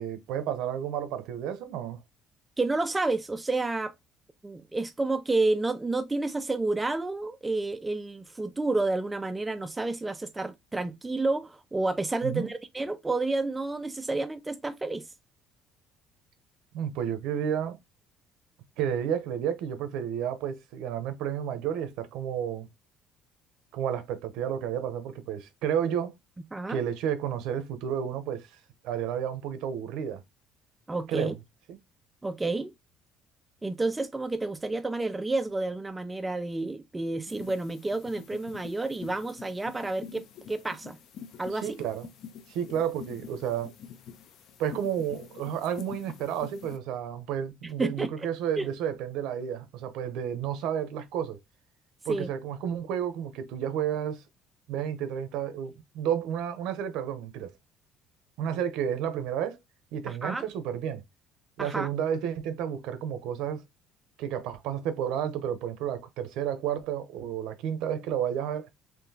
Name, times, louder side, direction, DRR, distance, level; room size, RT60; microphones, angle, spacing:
voice 1, 0.0-2.0 12.2-12.5 16.7-17.8 18.8-22.7 23.7-26.1 26.7-28.5 28.8-30.2 31.1-31.4 41.5-42.1 42.5-43.7 44.6-51.4 52.0-54.2 54.7-57.5 58.4-59.6 59.9-61.0 61.6-63.6 64.2-68.7, right 9 dB, 75° right, 0.7 m, -31 dB
voice 2, 2.6-3.9 4.4-15.1 26.5-26.8 30.9-31.3 32.2-32.7 33.6-41.0 41.4-41.8 47.8-48.1 48.6-48.7 52.1-52.3 60.1-60.5 61.6-61.9, right 2 dB, 10° right, 0.3 m, -30 dB
sound 1, 37.3-46.8, left 7 dB, 50° left, 0.5 m, -46 dB
3.8 x 2.8 x 2.7 m
cardioid pair, 170°, 0 cm